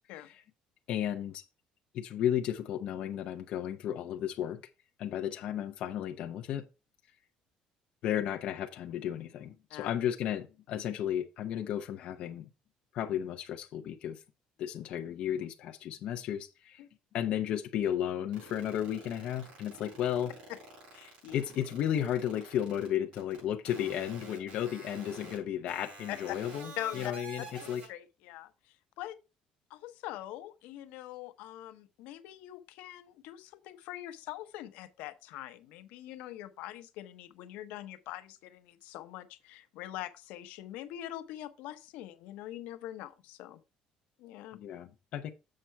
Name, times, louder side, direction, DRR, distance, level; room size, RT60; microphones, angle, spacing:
voice 1, 0.9-1.4 1.9-4.6 5.0-6.7 8.0-12.5 12.9-14.2 14.6-16.8 17.1-20.3 21.3-27.8 44.5-45.3, left 10 dB, 50° left, 0.6 m, -34 dB
sound 1, 18.3-22.9 23.1-23.4 23.7-25.4 25.7-27.9, right 3 dB, 55° right, 5.4 m, -48 dB
voice 2, 20.9-21.4 26.1-26.4 26.8-27.2 27.9-29.2 29.7-43.6 44.2-44.6, left 14 dB, 80° left, 0.8 m, -43 dB
7.5 x 5.6 x 4.5 m
cardioid pair, 180°, 3 cm